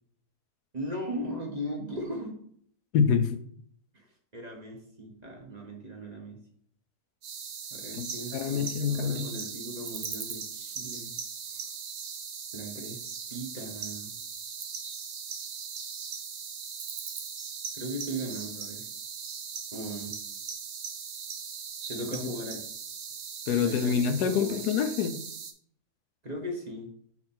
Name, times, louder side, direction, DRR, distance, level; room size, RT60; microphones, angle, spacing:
voice 1, 0.7-2.4 3.9-4.1 4.3-6.4 7.7-11.1 12.5-13.0 13.3-14.1 17.7-18.8 19.7-20.2 21.9-22.6 23.6-24.6 26.2-26.9, equal, 30° right, 1.0 m, -38 dB
voice 2, 2.9-3.4 7.9-8.1 8.3-9.3 23.5-25.2, left 7 dB, 85° left, 1.2 m, -26 dB
sound 1, 7.2-25.5, right 6 dB, 60° right, 1.0 m, -39 dB
5.1 x 4.4 x 4.2 m
omnidirectional pair, 1.6 m